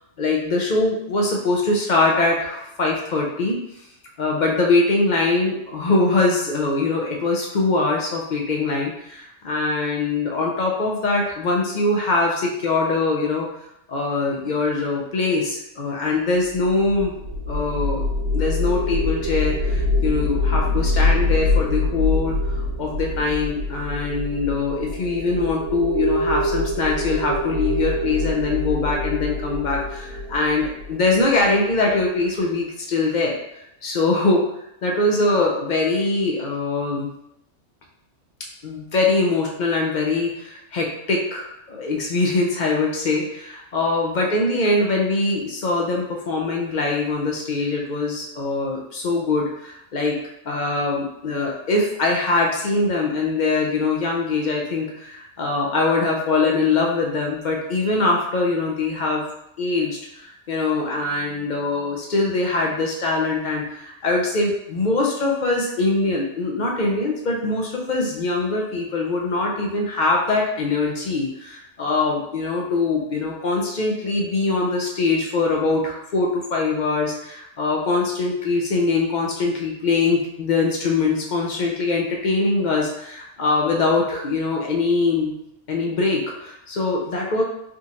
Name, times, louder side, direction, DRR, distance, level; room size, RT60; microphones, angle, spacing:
voice 1, 0.2-3.6 4.2-13.5 13.9-17.1 17.5-18.0 18.3-22.4 22.8-33.3 33.8-34.4 34.8-37.1 38.6-50.2 50.5-59.2 59.6-85.3 85.7-87.4, left 3 dB, 50° left, -1 dB, 0.6 m, -22 dB
sound 1, 16.5-31.7, left 2 dB, 85° right, 1.1 m, -24 dB
3.7 x 2.8 x 2.5 m, 0.79 s
omnidirectional pair, 1.2 m